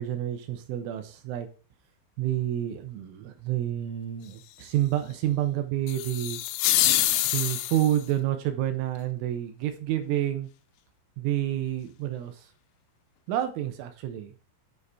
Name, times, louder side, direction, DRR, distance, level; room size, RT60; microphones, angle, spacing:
voice 1, 0.0-1.5 2.2-6.4 7.3-10.5 11.2-12.3 13.3-14.3, right 12 dB, 80° right, 7 dB, 3.4 m, -29 dB
sound 1, 5.9-8.1, left 14 dB, 80° left, 3.0 m, -25 dB
9.2 x 4.2 x 4.8 m, 0.37 s
omnidirectional pair, 5.7 m